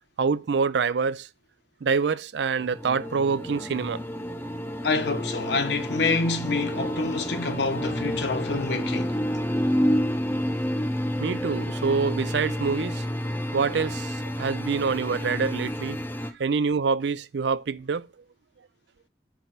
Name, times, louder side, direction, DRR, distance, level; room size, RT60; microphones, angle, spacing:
voice 1, 0.2-1.3 1.8-4.0 11.2-13.0 13.5-16.0 16.4-18.1, right 5 dB, 75° right, 0.4 m, -26 dB
sound 1, 2.6-16.3, equal, 10° left, 0.6 m, -29 dB
voice 2, 4.8-9.2, left 3 dB, 75° left, 1.0 m, -27 dB
5.3 x 4.7 x 5.7 m
head